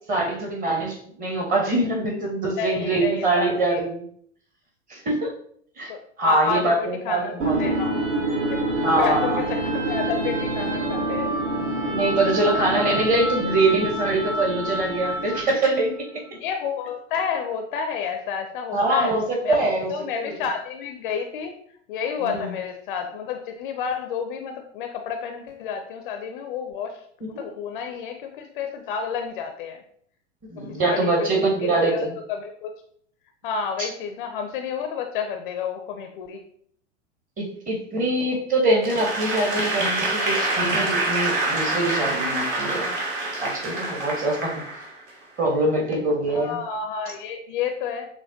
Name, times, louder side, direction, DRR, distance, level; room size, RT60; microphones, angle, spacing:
voice 1, 0.1-4.0 4.9-5.3 5.8-5.9 6.2-7.7 8.8-9.4 11.9-16.2 18.7-19.9 20.2-20.3 22.2-22.5 30.5-32.1 33.8-33.9 37.4-42.9 43.4-44.5 45.4-46.6, right 2 dB, 20° right, 0 dB, 1.0 m, -23 dB
voice 2, 2.6-3.8 5.9-8.0 8.5-8.6 9.0-11.3 11.8-11.9 16.3-19.1 19.4-19.6 19.9-21.5 21.9-29.8 30.6-32.7 33.4-36.4 46.3-48.1, left 6 dB, 45° left, 5 dB, 0.5 m, -30 dB
sound 1, 7.4-15.6, right 1 dB, 75° right, 1.5 m, -26 dB
Applause / Crowd, 38.8-45.2, right 2 dB, 45° right, 1.2 m, -26 dB
6.2 x 2.1 x 2.7 m, 0.63 s
figure-of-eight pair, 90°, 37 cm